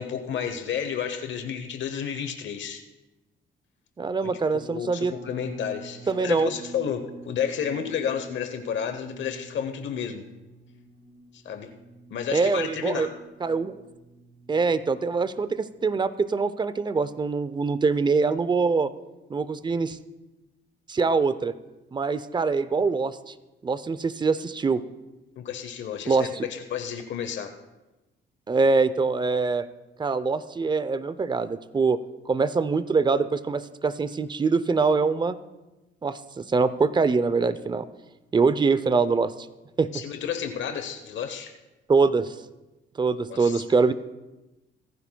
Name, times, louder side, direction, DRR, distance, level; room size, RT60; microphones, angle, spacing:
voice 1, 0.0-2.8 4.2-4.3 4.6-10.2 11.4-11.7 12.1-13.1 25.4-27.5 39.9-41.5 43.3-43.6, left 8 dB, 70° left, 7 dB, 0.9 m, -31 dB
voice 2, 4.0-5.1 6.1-6.5 12.3-13.1 13.4-13.7 14.5-18.9 19.3-20.0 20.9-21.5 21.9-23.3 23.6-24.8 26.1-26.5 28.5-29.6 30.0-32.0 32.3-35.4 36.0-37.8 38.3-39.3 39.8-39.9 41.9-42.3 43.0-43.9, right 4 dB, 20° right, 14 dB, 0.6 m, -24 dB
sound 1, 5.0-15.9, right 2 dB, 90° right, 2.8 m, -47 dB
26.5 x 10.0 x 2.3 m, 1.1 s
cardioid pair, 90°, 20 cm